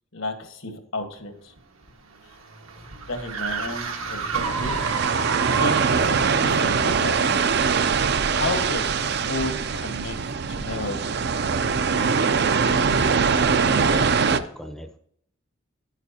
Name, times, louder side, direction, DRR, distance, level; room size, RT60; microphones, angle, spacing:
voice 1, 0.1-1.5 2.2-2.3 3.1-5.0 5.5-7.4 8.3-10.2 10.5-11.1, left 2 dB, 75° left, 6 dB, 1.5 m, -32 dB
sound 1, 1.6-6.1, right 5 dB, 85° right, 1.6 m, -30 dB
sound 2, 4.3-14.4, right 5 dB, 50° right, 0.5 m, -22 dB
voice 2, 13.6-15.0, equal, ahead, 4 dB, 0.6 m, -37 dB
11.0 x 9.0 x 2.8 m, 0.67 s
head